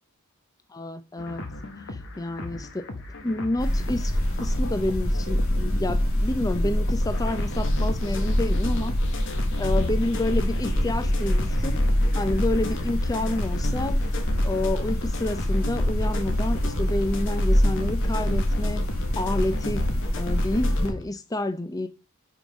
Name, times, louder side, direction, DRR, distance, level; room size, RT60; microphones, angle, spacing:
voice 1, 0.7-1.4 1.9-2.9 3.2-9.0 9.6-11.8 12.1-14.0 14.4-18.9 19.2-21.9, left 2 dB, 15° left, 0.5 m, -29 dB
sound 1, 1.2-21.0, left 2 dB, 55° left, 1.1 m, -35 dB
sound 2, 3.6-20.9, equal, 75° left, 1.9 m, -25 dB
5.6 x 5.0 x 5.1 m
head